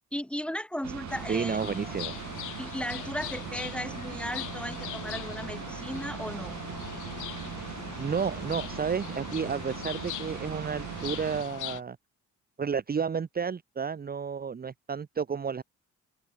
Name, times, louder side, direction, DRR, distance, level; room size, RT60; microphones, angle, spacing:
voice 1, 0.1-1.8 2.6-6.6, equal, 5° left, 2.5 m, -36 dB
sound 1, 0.8-11.4, right 11 dB, 65° right, 2.5 m, -40 dB
sound 2, 1.1-11.8, left 15 dB, 85° left, 2.6 m, -41 dB
voice 2, 1.3-2.1 8.0-12.0 12.6-15.6, right 6 dB, 30° right, 1.0 m, -31 dB
cardioid pair, 90°, 30 cm